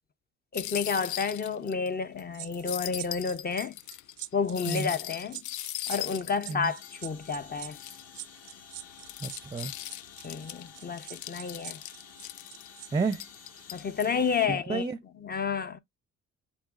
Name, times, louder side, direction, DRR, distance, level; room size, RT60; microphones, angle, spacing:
sound 1, 0.5-1.9 2.2-2.3 2.5-7.3 7.7-8.2 8.8-12.7 13.1-14.1, left 14 dB, 75° left, 0.5 m, -39 dB
voice 1, 0.5-3.7 4.3-5.4 5.9-7.8 10.2-11.8 13.7-14.8 15.2-15.8, left 5 dB, 30° left, 0.6 m, -30 dB
sound 2, 2.3-12.9 13.2-13.4, right 17 dB, 85° right, 0.5 m, -44 dB
sound 3, 6.6-14.5, left 7 dB, 55° left, 1.5 m, -51 dB
voice 2, 9.2-9.7 12.9-13.3 14.5-15.0, right 4 dB, 15° right, 0.5 m, -31 dB
7.2 x 3.0 x 2.4 m
cardioid pair, 90°, 30 cm